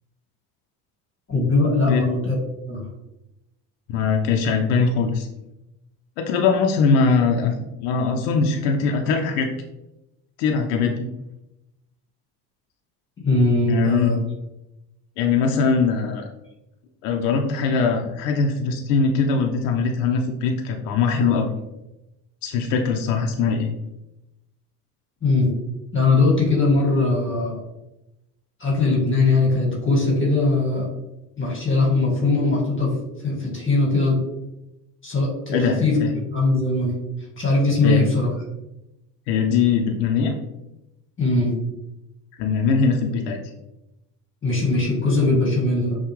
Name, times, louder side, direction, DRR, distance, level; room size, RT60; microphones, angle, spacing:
voice 1, 1.3-2.4 2.7-2.8 13.2-14.2 25.2-25.5 25.9-27.6 28.6-30.9 31.4-32.9 33.2-34.2 35.0-36.0 36.3-37.0 37.4-38.3 41.2-41.5 44.4-46.0, left 3 dB, 25° left, -2 dB, 1.4 m, -20 dB
voice 2, 3.9-5.3 6.2-7.5 7.8-9.5 10.4-11.1 13.7-14.1 15.2-16.3 17.0-21.5 22.4-23.7 35.5-36.1 37.8-38.0 39.3-40.3 42.4-43.4, left 5 dB, 80° left, 2 dB, 0.7 m, -21 dB
5.8 x 2.4 x 3.1 m, 0.94 s
supercardioid pair, 90°, 47 cm